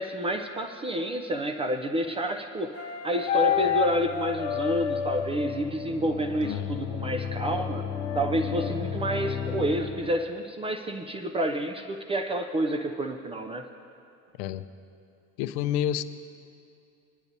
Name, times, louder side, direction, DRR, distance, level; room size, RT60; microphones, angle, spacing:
voice 1, 0.0-7.8 8.2-13.7, right 1 dB, 15° right, 5 dB, 0.3 m, -29 dB
sound 1, 2.7-5.6 7.9-8.7, left 10 dB, 35° left, 1.2 m, -29 dB
sound 2, 3.4-10.2, left 7 dB, 75° left, 1.0 m, -35 dB
voice 2, 6.4-6.8 14.4-14.6 15.4-16.0, left 11 dB, 50° left, 12 dB, 0.5 m, -29 dB
21.5 x 10.5 x 2.6 m, 2.7 s
figure-of-eight pair, 65°, 43 cm